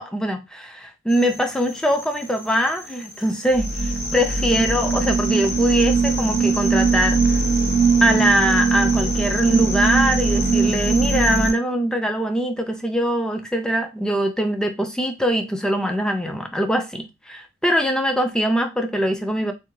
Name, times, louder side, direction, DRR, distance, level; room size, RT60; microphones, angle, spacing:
voice 1, 0.0-7.4 8.0-19.5, equal, 5° left, 0.3 m, -22 dB
sound 1, 1.1-11.5, right 4 dB, 55° left, 1.7 m, -21 dB
3.4 x 2.1 x 3.0 m
head